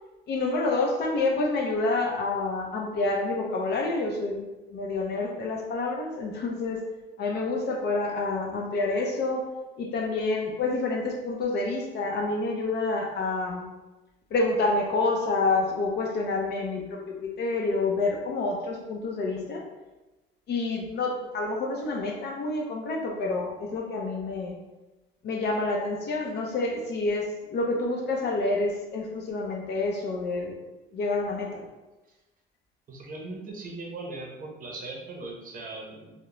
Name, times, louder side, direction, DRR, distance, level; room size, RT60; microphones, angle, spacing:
voice 1, 0.3-6.8 7.2-9.5 9.8-13.7 14.3-19.6 20.5-24.5 25.2-30.5 30.9-31.6, left 3 dB, 55° left, 0 dB, 0.6 m, -28 dB
voice 2, 32.9-36.1, right 2 dB, 45° right, -1 dB, 0.6 m, -39 dB
2.4 x 2.1 x 3.0 m, 1.1 s
cardioid pair, 105°, 20 cm